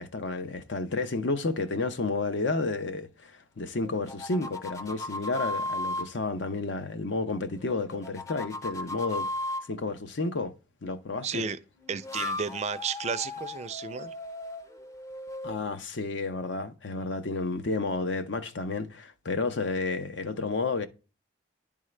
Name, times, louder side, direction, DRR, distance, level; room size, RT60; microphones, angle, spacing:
voice 1, 0.0-9.3 9.7-10.5 10.8-11.5 15.4-20.9, left 3 dB, 75° left, 0.8 m, -31 dB
sound 1, 3.8-6.1 7.6-9.6 11.8-15.8, left 2 dB, 15° left, 0.5 m, -36 dB
voice 2, 11.2-11.6 11.9-14.1, right 6 dB, 35° right, 0.4 m, -33 dB
10.5 x 3.7 x 3.2 m
head